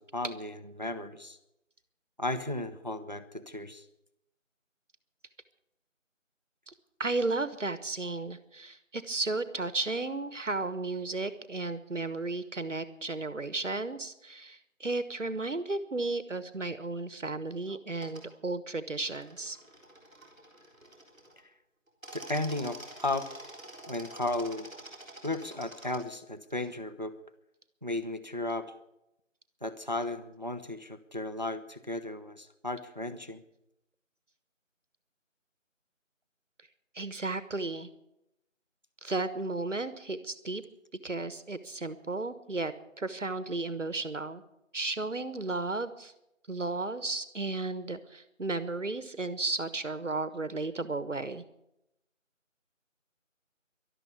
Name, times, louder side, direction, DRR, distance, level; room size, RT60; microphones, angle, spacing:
voice 1, 0.0-1.4 2.2-3.8 22.1-23.3 23.8-24.7 25.2-27.1 27.8-28.8 29.6-33.4, left 2 dB, 35° right, 11 dB, 0.8 m, -35 dB
voice 2, 7.0-19.6 36.9-37.9 39.0-40.6 41.0-44.4 44.7-46.1 46.5-51.4, right 3 dB, 65° right, 13 dB, 1.3 m, -34 dB
sound 1, 18.0-18.2 19.1-21.4 21.9-26.0, right 1 dB, ahead, 2.1 m, -48 dB
12.5 x 12.0 x 8.3 m, 0.85 s
figure-of-eight pair, 175°, 39 cm